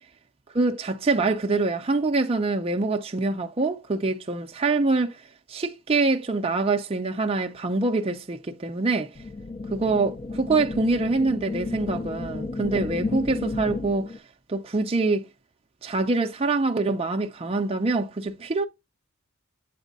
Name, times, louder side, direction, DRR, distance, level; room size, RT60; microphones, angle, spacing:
voice 1, 0.5-5.2 5.5-9.1 9.7-14.1 14.5-15.3 15.8-18.7, right 3 dB, 25° right, 0.5 m, -25 dB
sound 1, 9.2-14.2, left 3 dB, 30° left, 0.4 m, -32 dB
8.1 x 4.2 x 3.9 m
head